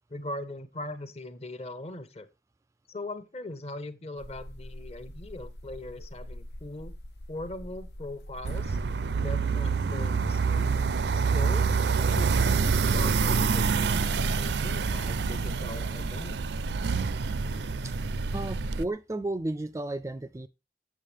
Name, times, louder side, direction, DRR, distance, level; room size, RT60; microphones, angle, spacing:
voice 1, 0.1-2.3 2.9-6.9 7.3-8.8 9.2-10.8 11.1-16.5, left 1 dB, 35° left, 1.0 m, -40 dB
sound 1, 4.2-18.9, left 1 dB, 75° left, 0.9 m, -44 dB
sound 2, 8.4-18.8, right 5 dB, 75° right, 0.5 m, -27 dB
voice 2, 18.3-20.5, right 2 dB, 15° right, 0.4 m, -33 dB
7.5 x 7.2 x 3.3 m
head